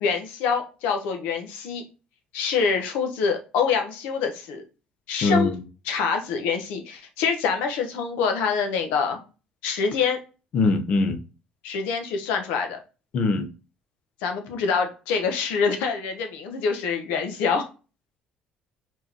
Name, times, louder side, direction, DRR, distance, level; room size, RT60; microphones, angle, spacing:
voice 1, 0.0-1.8 2.3-4.6 5.1-5.5 5.9-9.2 9.6-10.2 11.6-12.8 14.2-17.7, left 5 dB, 85° left, 1.0 m, -25 dB
voice 2, 5.2-5.6 10.5-11.2 13.1-13.5, left 3 dB, 50° left, 0.7 m, -22 dB
4.7 x 3.8 x 2.8 m
cardioid pair, 135°, 3 cm